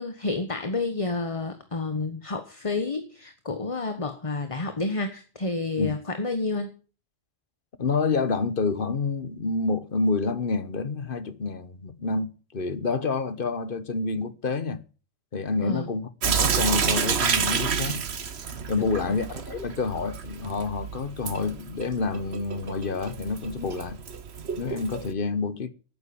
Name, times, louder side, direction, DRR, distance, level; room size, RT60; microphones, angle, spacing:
voice 1, 0.0-6.7 15.6-15.9 18.8-19.2, left 3 dB, 25° left, 1.3 m, -30 dB
voice 2, 7.8-14.8 15.3-18.0 18.7-24.0 24.6-25.7, left 4 dB, 45° left, 1.3 m, -28 dB
Sink (filling or washing) / Drip, 16.2-25.1, right 6 dB, 55° right, 1.3 m, -29 dB
12.0 x 9.6 x 8.4 m
omnidirectional pair, 1.3 m